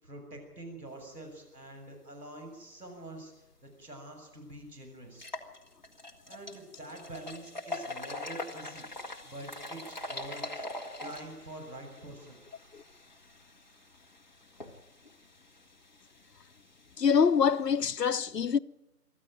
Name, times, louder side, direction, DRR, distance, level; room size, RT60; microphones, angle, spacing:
voice 1, 0.0-5.3 6.3-8.9 9.2-10.4 11.0-12.4, right 1 dB, 80° right, 7.4 m, -46 dB
sound 1, 3.8-3.9 4.3-4.4 5.1-17.8, left 2 dB, 30° left, 1.5 m, -44 dB
voice 2, 17.0-18.6, left 6 dB, 85° left, 0.8 m, -25 dB
23.5 x 14.0 x 9.1 m
figure-of-eight pair, 175°, 47 cm